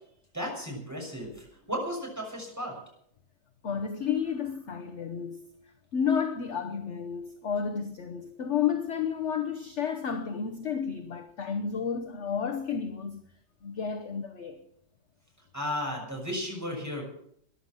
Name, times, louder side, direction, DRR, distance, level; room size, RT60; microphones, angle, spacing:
voice 1, 0.3-2.8 15.5-17.0, equal, 10° right, 6.2 m, -34 dB
voice 2, 3.6-5.4 5.9-13.2 13.6-14.6, left 7 dB, 45° left, 1.0 m, -31 dB
14.0 x 11.5 x 7.6 m
omnidirectional pair, 2.1 m